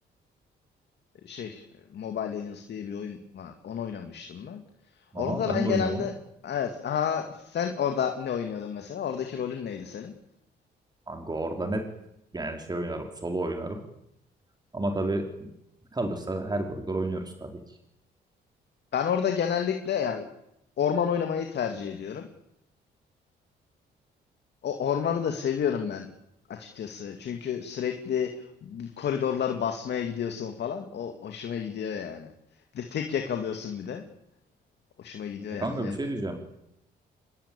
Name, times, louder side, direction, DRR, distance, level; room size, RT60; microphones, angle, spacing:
voice 1, 1.2-1.6 1.9-4.6 5.1-6.1 6.4-10.1 18.9-20.3 20.8-22.3 24.6-26.1 26.5-32.3 32.7-34.0 35.0-35.9, left 8 dB, 65° left, 4 dB, 2.8 m, -30 dB
voice 2, 5.1-6.1 11.1-11.9 12.3-13.8 14.7-15.5 15.9-17.8 35.6-36.4, right 2 dB, 20° right, 4 dB, 4.3 m, -31 dB
27.0 x 21.0 x 8.7 m, 0.81 s
cardioid pair, 80°, 19 cm